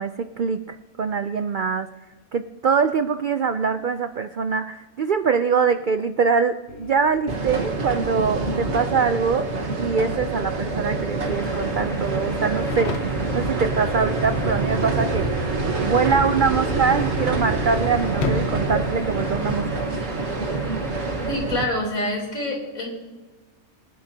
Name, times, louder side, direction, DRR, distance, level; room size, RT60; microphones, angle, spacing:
voice 1, 0.0-1.9 2.3-9.5 9.8-15.3 15.8-19.9, right 5 dB, 80° right, 9 dB, 0.4 m, -23 dB
sound 1, 6.7-19.9, left 6 dB, 55° left, 1.0 m, -38 dB
sound 2, 7.3-21.6, right 3 dB, 50° right, 1.6 m, -26 dB
sound 3, 11.2-21.3, equal, ahead, 2.0 m, -39 dB
voice 2, 21.3-22.9, left 1 dB, 70° left, -1 dB, 4.0 m, -26 dB
24.0 x 11.5 x 2.8 m, 1.2 s
omnidirectional pair, 1.5 m